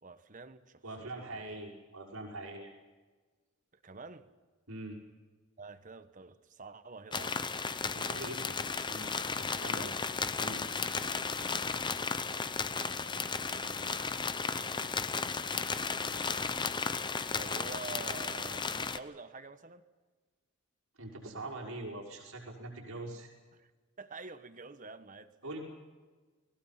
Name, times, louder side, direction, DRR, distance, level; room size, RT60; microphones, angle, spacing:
voice 1, 0.0-1.6 3.7-4.3 5.6-7.4 7.8-8.1 9.7-10.0 11.4-12.2 12.9-14.0 14.4-15.0 15.8-16.8 17.4-19.9 23.5-23.7 24.0-25.3, right 3 dB, 40° right, 11 dB, 1.2 m, -49 dB
voice 2, 0.8-2.7 4.7-5.0 8.0-8.6 8.9-9.9 10.4-10.6 21.0-23.3 25.4-25.6, right 2 dB, 90° right, -1 dB, 5.7 m, -43 dB
sound 1, 7.1-19.0, left 5 dB, 20° left, 0.8 m, -34 dB
30.0 x 21.0 x 5.9 m, 1.3 s
head